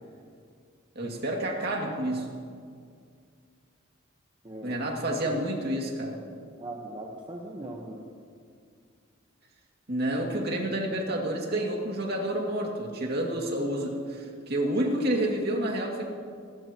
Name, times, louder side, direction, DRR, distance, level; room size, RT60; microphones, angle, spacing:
voice 1, 1.0-2.3 4.6-6.2 9.9-16.1, right 1 dB, 50° right, 0 dB, 2.4 m, -29 dB
voice 2, 4.4-4.8 5.2-5.4 5.7-5.8 6.6-8.0, right 1 dB, 25° right, -1 dB, 1.2 m, -40 dB
26.5 x 13.5 x 3.0 m, 2.2 s
head